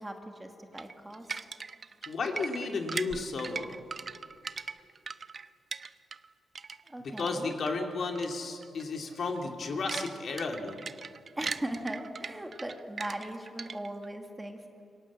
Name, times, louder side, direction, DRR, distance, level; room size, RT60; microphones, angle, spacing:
voice 1, 0.0-1.4 6.8-7.5 11.4-14.6, right 1 dB, 10° right, 4 dB, 2.1 m, -39 dB
sound 1, 0.8-6.3 6.6-7.7 8.2-8.4 8.6-8.8 9.3-14.1, right 5 dB, 35° right, 0.7 m, -40 dB
voice 2, 2.1-3.8 7.0-10.8, left 3 dB, 50° left, 3 dB, 2.8 m, -33 dB
27.5 x 24.0 x 7.5 m, 2.5 s
cardioid pair, 130°, 0 cm